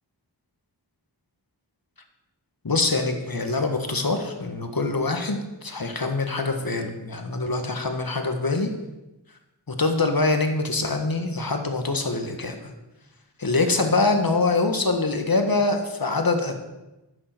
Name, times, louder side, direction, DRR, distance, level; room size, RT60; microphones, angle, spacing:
voice 1, 2.6-8.7 9.8-12.7 13.4-16.5, left 3 dB, 55° left, 5 dB, 1.8 m, -24 dB
11.0 x 8.8 x 6.2 m, 1.0 s
wide cardioid pair, 45°, 42 cm